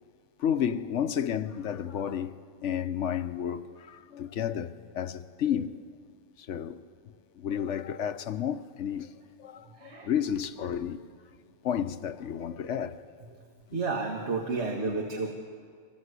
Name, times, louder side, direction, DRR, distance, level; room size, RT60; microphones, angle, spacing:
voice 1, 0.4-5.8 6.4-6.8 7.4-9.1 9.4-11.0 11.6-13.0 13.7-13.8, left 9 dB, 70° left, 1.1 m, -31 dB
voice 2, 9.6-10.1 12.4-12.9 13.2-13.4 13.7-15.3, right 3 dB, 60° right, 1.9 m, -33 dB
24.5 x 21.0 x 8.2 m
omnidirectional pair, 1.3 m